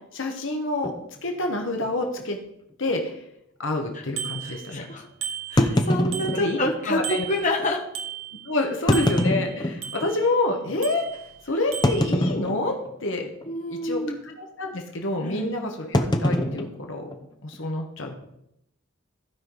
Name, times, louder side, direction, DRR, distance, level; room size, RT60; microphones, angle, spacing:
voice 1, 0.1-0.9 1.2-2.4 2.8-3.1 3.6-4.8 6.3-6.6 6.9-7.3 8.4-11.0 11.4-13.3 13.7-17.1 17.4-18.1, left 2 dB, 60° left, 3 dB, 1.2 m, -27 dB
sound 1, 0.8-1.0 1.8-1.9 2.2-2.3 2.9-3.0 5.6-6.8 7.6-7.7 8.7-10.2 10.7-10.8 11.8-12.9 13.2-13.6 13.8-14.1 15.9-17.6, left 1 dB, 20° left, 0.7 m, -24 dB
Bicycle bell, 4.2-4.9 5.2-6.7 7.0-8.6 8.9-10.4 10.8-11.4 11.7-12.1, right 9 dB, 85° right, 1.2 m, -36 dB
voice 2, 4.4-5.1 5.5-7.8 13.5-14.2 15.2-15.5, left 1 dB, 35° left, 1 dB, 1.2 m, -28 dB
15.5 x 5.3 x 3.9 m, 0.80 s
head